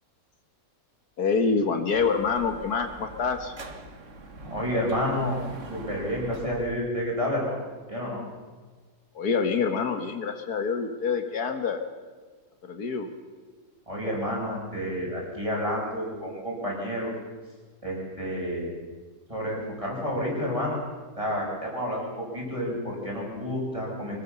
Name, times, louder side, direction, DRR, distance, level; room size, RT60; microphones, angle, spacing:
voice 1, 1.2-3.5 9.2-11.8 12.6-13.1, left 5 dB, 70° left, 6 dB, 2.0 m, -26 dB
Dog / Motorcycle, 1.9-6.9, right 2 dB, 50° right, 1.9 m, -43 dB
voice 2, 4.4-5.4 5.7-7.6 7.9-8.2 13.9-17.1 17.8-18.7 19.3-20.8 21.2-24.2, equal, 20° right, -3 dB, 7.3 m, -30 dB
24.5 x 20.0 x 7.0 m, 1.4 s
omnidirectional pair, 1.7 m